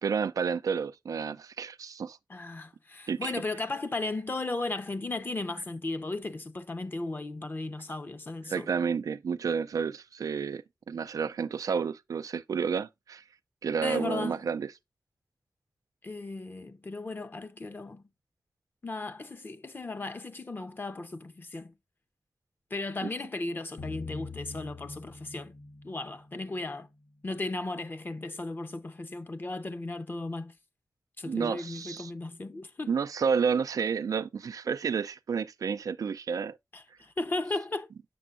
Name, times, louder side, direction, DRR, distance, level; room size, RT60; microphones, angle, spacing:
voice 1, 0.0-2.2 3.1-3.3 8.5-13.2 13.6-14.7 23.0-23.1 31.3-32.1 32.9-36.6, right 6 dB, 90° right, 0.3 m, -30 dB
voice 2, 2.3-8.7 13.8-14.4 16.0-18.0 18.8-21.7 22.7-25.5 25.8-26.9 27.2-30.5 31.2-33.0 36.7-37.9, left 2 dB, 35° left, 0.7 m, -36 dB
sound 1, 23.8-26.9, left 3 dB, 60° left, 1.2 m, -43 dB
7.0 x 6.6 x 2.4 m
wide cardioid pair, 110°, 6 cm